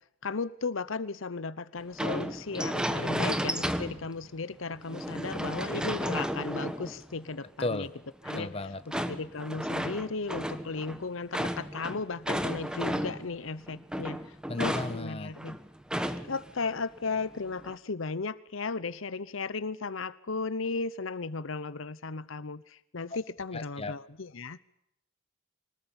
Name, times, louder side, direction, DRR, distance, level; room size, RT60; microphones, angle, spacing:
voice 1, 0.2-7.9 8.2-15.6 16.3-24.6, left 4 dB, 70° left, 16 dB, 0.9 m, -35 dB
sound 1, 2.0-4.3 4.7-7.3 8.2-13.3 13.7-16.5 16.8-16.9 17.4-17.8, equal, 5° right, 1.3 m, -33 dB
voice 2, 7.6-7.9 8.3-9.0 14.5-15.3 23.5-23.9, left 2 dB, 30° left, 11 dB, 1.2 m, -35 dB
25.5 x 19.5 x 7.1 m, 0.76 s
head